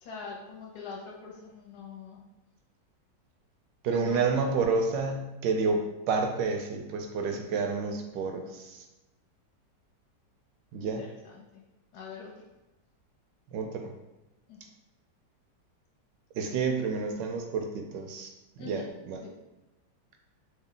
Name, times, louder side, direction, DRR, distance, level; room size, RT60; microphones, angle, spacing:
voice 1, 0.0-2.2 3.9-4.3 10.8-11.6 11.9-12.3 14.5-14.6 18.6-18.9 19.2-19.3, left 5 dB, 70° left, -1 dB, 1.1 m, -43 dB
voice 2, 3.8-8.8 10.7-11.0 13.5-13.9 16.3-18.3 18.6-19.3, right 4 dB, 80° right, 3 dB, 1.2 m, -29 dB
3.3 x 2.1 x 3.7 m, 1.0 s
omnidirectional pair, 1.9 m